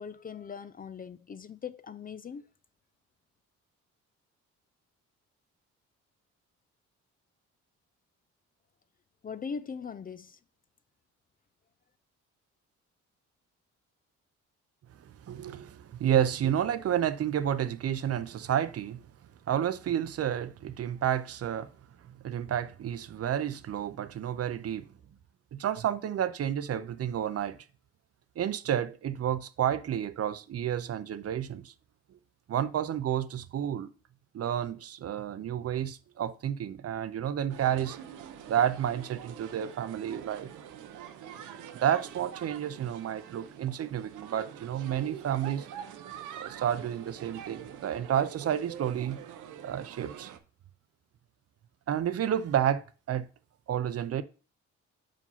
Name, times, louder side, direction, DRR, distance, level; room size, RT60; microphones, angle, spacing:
voice 1, 0.0-2.5 9.2-10.4, left 6 dB, 30° left, 0.4 m, -40 dB
voice 2, 15.2-19.0 19.5-21.7 22.2-24.9 25.5-27.6 28.4-31.7 32.5-33.9 34.3-38.0 38.5-40.5 41.8-45.7 46.4-49.2 49.6-50.3 51.9-53.3 53.7-54.2, right 10 dB, 50° right, 0.7 m, -30 dB
sound 1, 37.5-50.4, right 9 dB, 80° right, 0.9 m, -45 dB
5.4 x 5.1 x 5.5 m
cardioid pair, 90°, 30 cm